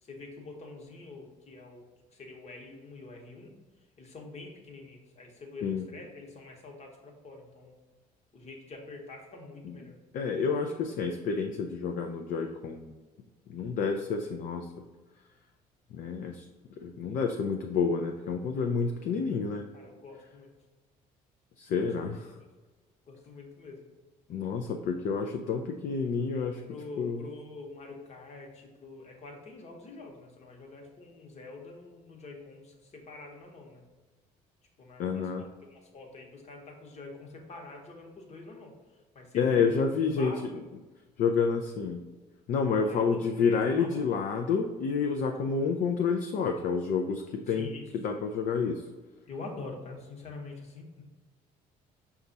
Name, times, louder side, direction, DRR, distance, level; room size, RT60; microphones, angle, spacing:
voice 1, 0.0-3.5 4.0-7.8 8.3-10.0 19.7-20.5 22.0-22.1 23.1-23.9 26.7-33.8 34.8-39.8 40.2-40.4 42.7-44.0 47.5-47.8 49.3-51.0, left 3 dB, 45° left, 0 dB, 1.0 m, -46 dB
voice 2, 10.1-13.0 13.5-14.8 15.9-16.5 16.8-19.6 21.6-22.3 24.3-26.6 27.0-27.2 35.0-35.4 39.3-40.5 41.2-42.0 42.5-48.8, left 5 dB, 60° left, 3 dB, 0.4 m, -29 dB
5.3 x 2.4 x 3.9 m, 1.2 s
supercardioid pair, 90°, 16 cm